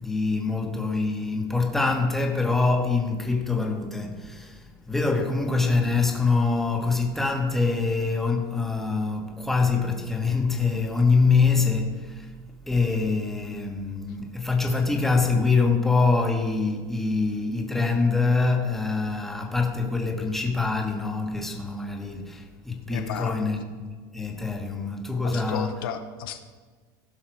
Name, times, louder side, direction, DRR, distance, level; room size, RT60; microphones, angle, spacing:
voice 1, 0.0-12.3 12.7-25.9, left 4 dB, 5° left, 1.4 m, -24 dB
voice 2, 22.9-23.4 25.2-26.4, left 8 dB, 85° left, 1.0 m, -33 dB
16.0 x 5.7 x 4.6 m
supercardioid pair, 130°, 11 cm